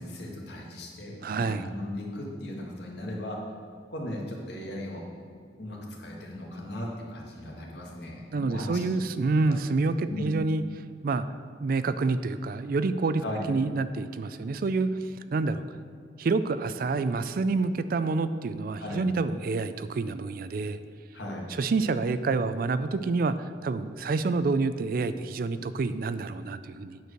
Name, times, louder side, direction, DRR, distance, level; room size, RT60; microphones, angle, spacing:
voice 1, 0.0-3.4 3.9-5.0 5.6-9.0 9.4-9.6 10.1-10.3 13.2-13.5 18.8-19.1 21.1-21.5, left 1 dB, 70° left, -2 dB, 1.8 m, -37 dB
voice 2, 1.2-1.7 8.3-10.6 11.0-11.3 11.6-13.2 13.5-15.6 16.2-20.8 21.5-23.3 23.6-27.0, right 3 dB, 50° right, 12 dB, 0.4 m, -28 dB
9.3 x 4.6 x 6.5 m, 2.4 s
head